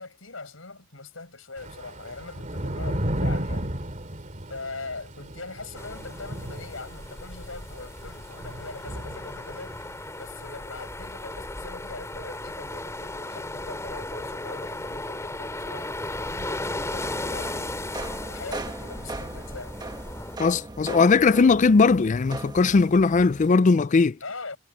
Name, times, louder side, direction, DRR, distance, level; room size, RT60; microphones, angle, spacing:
voice 1, 0.0-3.7 4.5-9.8 10.2-15.9 16.2-17.8 18.3-19.8 24.2-24.6, left 3 dB, 90° left, 6.1 m, -41 dB
Thunder / Rain, 1.6-9.9, equal, 40° right, 2.6 m, -33 dB
sound 1, 5.8-20.4, left 2 dB, 15° left, 3.1 m, -36 dB
sound 2, 16.9-23.5, right 2 dB, 20° right, 1.3 m, -38 dB
voice 2, 20.4-24.2, left 4 dB, 40° left, 0.4 m, -19 dB
head